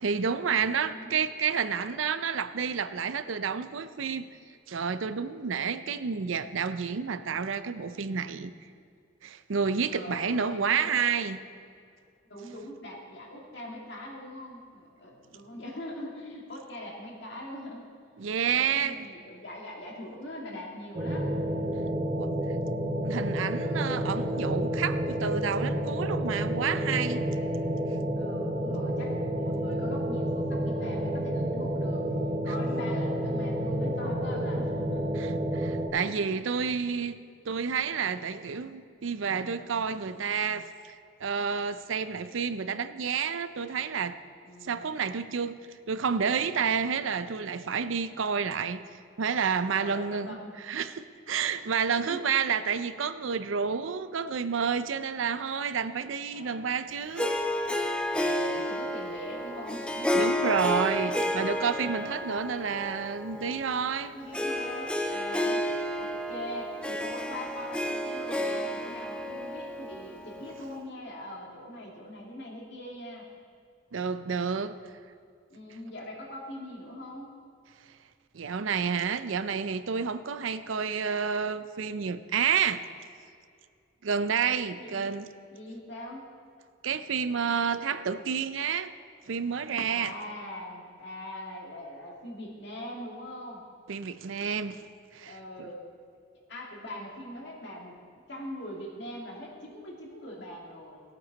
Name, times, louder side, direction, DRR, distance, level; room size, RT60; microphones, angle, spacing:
voice 1, 0.0-4.3 4.7-8.5 9.2-11.4 18.2-19.1 22.2-22.3 23.0-27.2 35.2-41.0 41.2-44.2 44.6-45.6 45.9-48.8 49.2-50.4 50.6-57.4 60.1-64.1 73.9-74.8 78.3-82.8 84.0-85.3 86.8-88.9 89.3-90.1 93.9-94.9 95.1-95.7, right 6 dB, 75° right, 12 dB, 0.5 m, -30 dB
voice 2, 0.8-1.2 5.8-6.1 9.9-11.0 12.3-17.9 18.5-21.3 28.2-32.1 32.4-35.1 44.5-44.9 49.7-50.6 51.9-52.2 56.3-56.9 58.1-60.3 61.8-62.2 64.1-65.6 66.0-73.3 75.5-77.4 84.8-85.1 85.5-86.2 89.9-93.6 95.2-95.8 96.5-98.0 98.3-101.0, left 1 dB, 60° left, -1 dB, 2.2 m, -42 dB
sound 1, 20.9-35.9, equal, 25° right, 1.0 m, -30 dB
Harp, 57.2-70.8, left 1 dB, 5° left, 0.5 m, -31 dB
18.0 x 8.5 x 4.0 m, 2.3 s
head